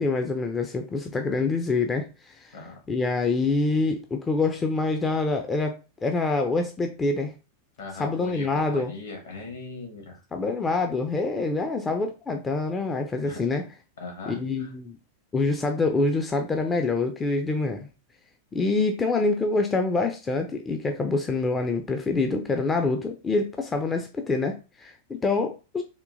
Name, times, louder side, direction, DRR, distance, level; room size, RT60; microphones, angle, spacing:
voice 1, 0.0-2.5 2.9-7.3 8.0-8.9 10.3-13.6 14.4-15.0 15.3-17.9 18.5-25.8, left 3 dB, 15° left, 5 dB, 0.4 m, -26 dB
voice 2, 7.8-10.2 13.2-13.5 14.0-14.7, left 3 dB, 65° left, 2 dB, 1.4 m, -39 dB
3.6 x 2.7 x 2.5 m, 0.30 s
figure-of-eight pair, 90°, 0 cm